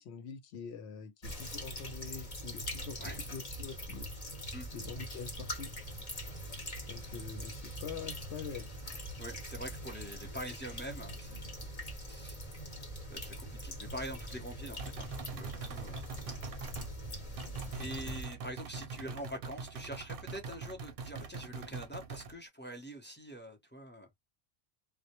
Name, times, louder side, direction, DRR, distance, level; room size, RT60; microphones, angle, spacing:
voice 1, 0.0-3.0 3.3-4.1 4.7-5.7 6.9-8.7 17.9-18.0, left 6 dB, 85° left, 0.9 m, -45 dB
sound 1, 1.2-18.2, equal, 40° left, 0.9 m, -43 dB
voice 2, 9.2-11.4 12.1-12.4 13.1-16.0 17.7-24.1, equal, 10° left, 0.6 m, -44 dB
sound 2, 14.8-16.9 17.4-22.3, right 4 dB, 65° right, 0.7 m, -43 dB
2.1 x 2.1 x 2.8 m
omnidirectional pair, 1.1 m